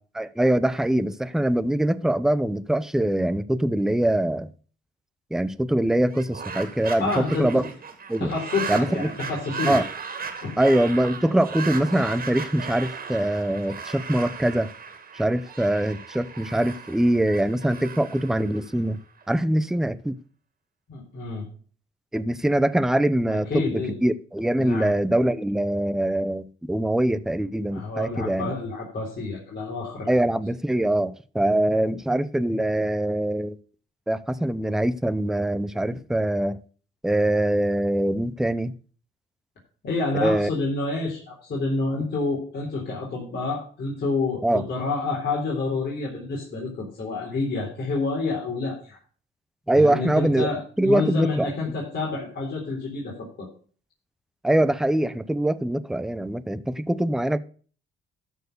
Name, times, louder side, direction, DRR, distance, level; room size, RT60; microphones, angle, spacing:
voice 1, 0.1-4.5 5.3-7.7 8.1-8.3 8.7-9.2 9.6-9.9 10.6-14.7 15.1-19.0 19.3-20.2 22.1-28.5 30.1-33.6 34.1-36.6 37.0-38.7 40.2-40.5 44.4-44.6 49.7-50.5 50.8-51.5 54.4-57.4, right 1 dB, ahead, 0.5 m, -23 dB
sound 1, 6.0-19.2, right 6 dB, 50° right, 2.2 m, -36 dB
voice 2, 7.0-7.5 8.2-9.8 10.4-10.6 20.9-21.5 23.3-24.0 24.6-24.9 27.7-30.1 39.8-49.0 49.7-53.5, left 3 dB, 55° left, 3.7 m, -28 dB
13.0 x 4.6 x 6.6 m
cardioid pair, 90°, 20 cm